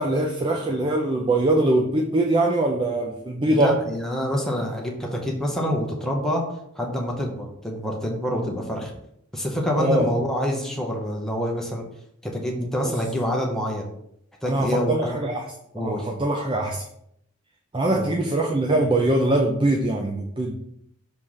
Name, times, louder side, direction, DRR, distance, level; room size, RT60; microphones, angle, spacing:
voice 1, 0.0-3.8 9.8-10.1 12.8-12.9 14.5-15.5 15.8-16.8 17.7-20.5, right 1 dB, 25° right, 1 dB, 0.6 m, -22 dB
voice 2, 3.4-6.4 6.7-8.9 9.3-11.8 12.2-13.9 14.4-15.2 15.7-16.1 17.9-18.1, equal, ahead, -1 dB, 1.0 m, -26 dB
6.3 x 3.3 x 5.6 m, 0.74 s
head